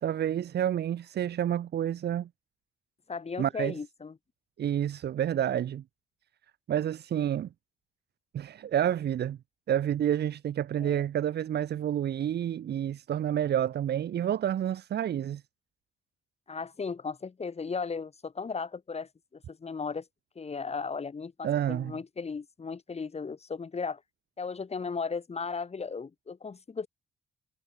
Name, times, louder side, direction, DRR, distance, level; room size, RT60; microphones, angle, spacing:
voice 1, 0.0-2.3 3.4-3.7 4.6-5.8 6.7-7.5 8.3-9.4 9.7-15.4 21.4-21.9, right 10 dB, 55° right, 0.9 m, -29 dB
voice 2, 3.1-4.1 10.8-11.0 16.5-20.0 20.4-24.0 24.4-26.9, left 5 dB, 30° left, 2.2 m, -36 dB
cardioid pair, 90°, 20 cm